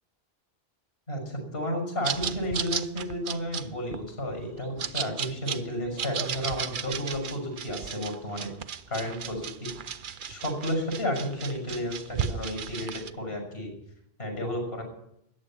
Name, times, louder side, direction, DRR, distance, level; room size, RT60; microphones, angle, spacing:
voice 1, 1.1-8.5 8.9-9.7 10.3-13.7 14.2-14.8, equal, 80° left, 2 dB, 6.2 m, -32 dB
sound 1, 2.0-13.1, right 7 dB, 55° right, 0.8 m, -35 dB
14.0 x 10.0 x 8.7 m, 0.77 s
omnidirectional pair, 1.1 m